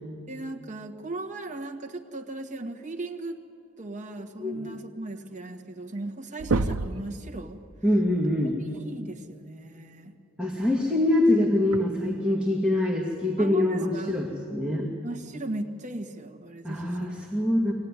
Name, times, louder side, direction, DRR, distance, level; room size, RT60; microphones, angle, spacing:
voice 1, 0.3-3.4 3.8-7.6 8.6-10.1 13.4-14.2 15.0-17.1, right 2 dB, 35° right, 2 dB, 1.6 m, -37 dB
sound 1, 5.5-5.6 5.9-6.1 6.4-7.1 8.8-8.9 10.7-10.8 11.7-11.8, right 3 dB, 80° right, 0.7 m, -27 dB
voice 2, 7.8-8.6 10.4-14.9 16.6-17.7, left 1 dB, 5° right, -3 dB, 2.0 m, -24 dB
23.5 x 16.5 x 9.8 m, 2.4 s
head